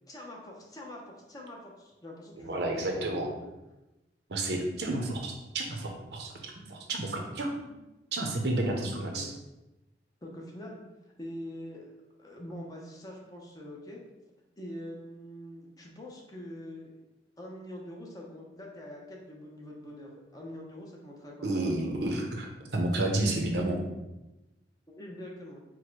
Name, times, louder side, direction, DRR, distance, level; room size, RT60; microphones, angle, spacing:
voice 1, 0.1-3.5 7.7-7.8 8.7-9.3 10.2-11.9 12.2-14.0 14.6-17.0 17.4-21.6 24.9-25.6, left 1 dB, 20° left, -1 dB, 0.7 m, -44 dB
voice 2, 2.4-3.3 4.3-7.5 8.1-9.3 21.4-23.8, right 2 dB, 65° right, 1 dB, 0.7 m, -31 dB
4.6 x 2.1 x 4.5 m, 1.0 s
head